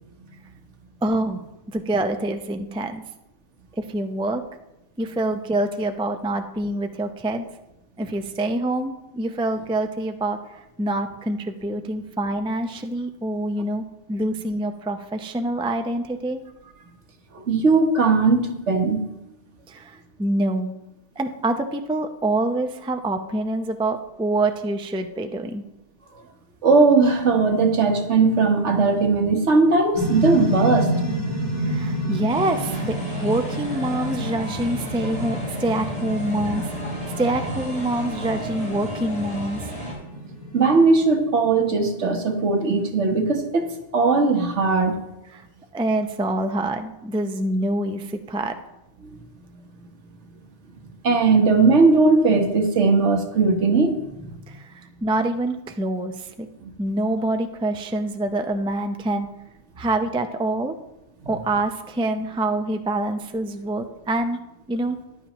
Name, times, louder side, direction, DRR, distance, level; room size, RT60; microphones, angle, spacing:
voice 1, 1.0-1.4 1.7-3.0 3.7-4.4 5.0-7.4 8.0-16.4 19.7-20.7 21.2-25.7 31.6-36.7 37.2-39.7 45.3-45.4 45.7-48.6 54.5-56.5 56.8-59.3 59.8-60.7 61.3-64.4 64.7-65.0, right 1 dB, 10° right, 6 dB, 0.4 m, -26 dB
voice 2, 17.3-19.0 26.6-30.9 40.5-45.0 51.0-54.4 61.2-61.3, right 4 dB, 75° right, 4 dB, 1.5 m, -19 dB
sound 1, 29.9-41.4, equal, 25° right, 4.7 m, -29 dB
sound 2, 32.3-39.9, equal, 45° right, 4.3 m, -34 dB
14.0 x 10.5 x 3.0 m, 0.93 s
omnidirectional pair, 1.2 m